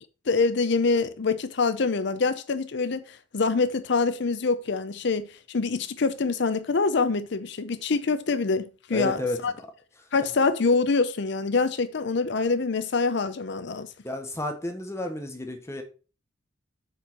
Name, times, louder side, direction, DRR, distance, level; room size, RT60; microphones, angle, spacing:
voice 1, 0.3-9.5 10.1-13.9, left 4 dB, 60° left, 0.6 m, -25 dB
voice 2, 8.9-9.4 14.0-15.8, left 1 dB, 15° left, 1.0 m, -31 dB
6.8 x 4.6 x 5.8 m
head